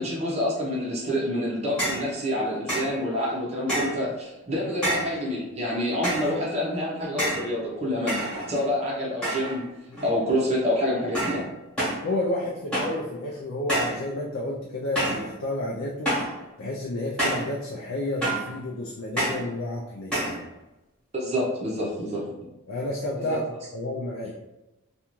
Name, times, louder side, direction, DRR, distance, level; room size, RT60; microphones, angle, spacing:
voice 1, 0.0-8.2 8.5-9.6 10.0-11.4 21.1-22.3 23.2-23.4, left 1 dB, 30° right, -5 dB, 0.6 m, -27 dB
sound 1, 1.8-2.1 2.7-3.0 3.7-4.0 4.8-5.2 6.0-6.4 7.2-7.5 8.1-8.7 9.2-9.6 9.9-10.4 11.1-11.4 11.8-12.0 12.7-13.0 13.7-14.0 14.9-15.3 16.0-16.4 17.2-17.5 18.2-18.5 19.2-19.5 20.1-20.4, right 1 dB, 5° left, 1.0 m, -28 dB
voice 2, 12.0-16.2 16.6-20.5 22.7-23.4 23.7-24.3, left 1 dB, 65° left, -2 dB, 0.4 m, -31 dB
2.5 x 2.3 x 2.9 m, 0.94 s
head